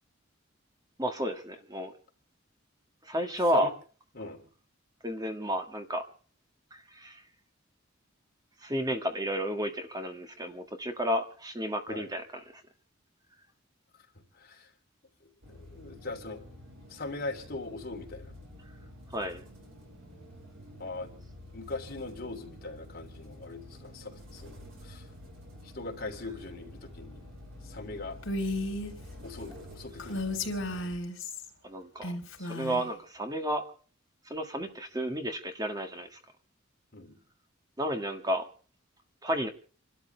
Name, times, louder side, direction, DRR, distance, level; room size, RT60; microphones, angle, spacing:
voice 1, 1.0-1.9 3.0-3.7 5.0-6.0 6.7-7.2 8.6-12.6 19.1-19.4 31.6-32.1 32.4-33.6 34.3-36.2 37.8-38.5 39.2-39.5, equal, 20° right, 6 dB, 1.9 m, -32 dB
voice 2, 4.1-4.5 11.9-12.1 14.3-14.7 15.5-16.5 16.9-18.3 20.8-21.1 21.5-25.1 25.6-27.2 27.6-28.2 29.2-30.5 36.9-37.2, left 3 dB, 50° left, 2 dB, 3.1 m, -40 dB
sound 1, 15.4-31.0, left 1 dB, 70° right, 5.9 m, -49 dB
Female speech woman speaking, 28.2-28.9 30.0-31.5 32.0-32.9, left 1 dB, 70° left, 4.0 m, -34 dB
29.0 x 12.5 x 3.4 m, 0.42 s
head